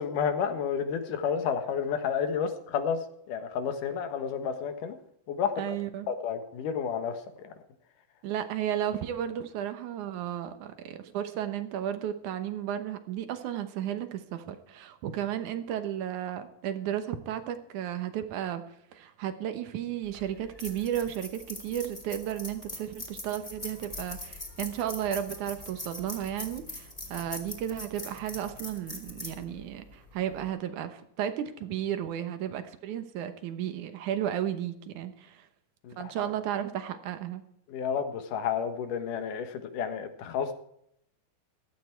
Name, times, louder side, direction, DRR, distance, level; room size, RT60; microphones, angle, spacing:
voice 1, 0.0-5.0 5.3-5.6 6.1-7.5 35.8-36.3 37.7-40.5, left 7 dB, 80° left, 9 dB, 2.9 m, -31 dB
voice 2, 5.6-6.1 8.2-18.6 18.9-35.5 36.0-37.4, right 10 dB, 75° right, 10 dB, 2.5 m, -33 dB
sound 1, 20.0-30.5, left 2 dB, 10° left, 2.4 m, -42 dB
15.5 x 12.0 x 4.5 m, 0.72 s
omnidirectional pair, 3.6 m